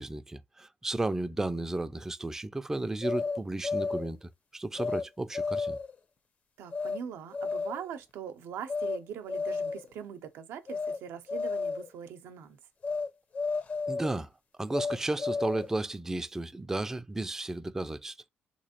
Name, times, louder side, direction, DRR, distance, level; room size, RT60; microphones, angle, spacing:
voice 1, 0.0-5.8 13.9-14.3 14.6-18.2, right 2 dB, 10° right, 0.3 m, -33 dB
sound 1, 3.0-4.1 4.8-5.0 5.3-5.9 6.7-7.0 7.3-7.9 8.7-9.0 9.3-9.9 10.7-11.0 11.3-11.9 12.8-13.1 13.3-14.2 14.7-15.7, left 4 dB, 40° left, 0.6 m, -32 dB
voice 2, 6.6-12.6, right 8 dB, 90° right, 0.6 m, -42 dB
3.3 x 2.9 x 2.8 m
cardioid pair, 110°, 4 cm